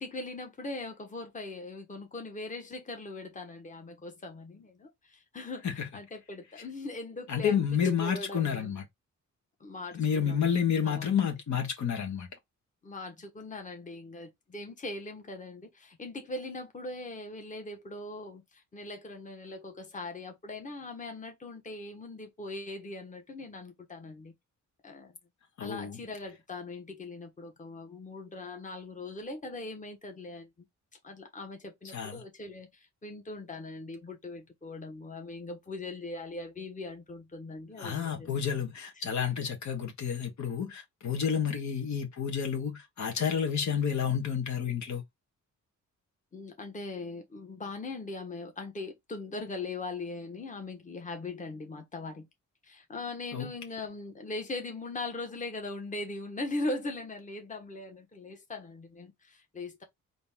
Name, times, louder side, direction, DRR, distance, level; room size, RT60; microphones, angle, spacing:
voice 1, 0.0-8.8 9.6-10.5 10.8-11.1 12.8-24.3 24.8-25.2 25.6-30.5 31.0-32.7 33.0-38.3 46.3-52.3 52.6-59.8, left 2 dB, 25° left, 1.2 m, -40 dB
voice 2, 7.3-8.8 9.9-12.3 25.6-26.0 31.8-32.2 37.8-45.0 53.3-53.5, left 7 dB, 60° left, 1.2 m, -30 dB
4.0 x 2.8 x 3.5 m
cardioid pair, 120°, 32 cm